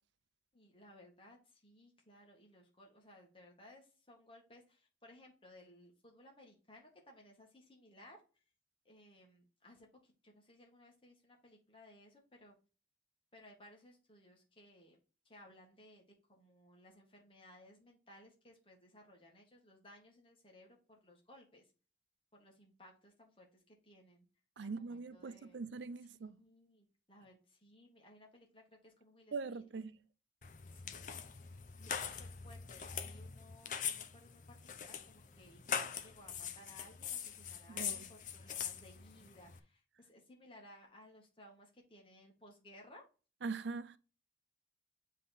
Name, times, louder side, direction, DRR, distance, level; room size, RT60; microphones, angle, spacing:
voice 1, 0.5-8.4 8.9-12.6 13.3-15.0 15.3-21.7 22.3-24.3 24.6-25.6 26.1-29.6 30.7-31.4 31.8-43.0, left 1 dB, 30° left, 1.9 m, -61 dB
voice 2, 24.6-26.4 29.3-30.0 37.7-38.1 43.4-44.0, right 4 dB, 85° right, 0.5 m, -42 dB
sound 1, 30.4-39.6, left 7 dB, 45° left, 0.6 m, -43 dB
7.7 x 3.6 x 4.0 m
head